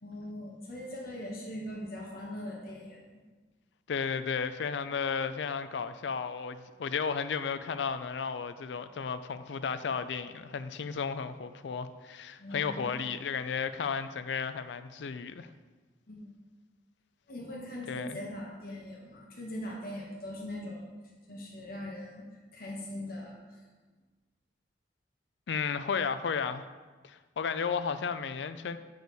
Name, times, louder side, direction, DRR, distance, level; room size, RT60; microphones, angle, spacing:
voice 1, 0.0-3.0 12.4-12.9 16.1-16.3 17.3-20.8 21.3-22.2 22.5-23.4, left 1 dB, 55° left, -2 dB, 1.3 m, -41 dB
voice 2, 3.9-15.5 17.9-18.2 25.5-26.6 27.0-28.8, left 6 dB, 70° left, 12 dB, 0.4 m, -33 dB
6.7 x 6.2 x 4.1 m, 1.3 s
head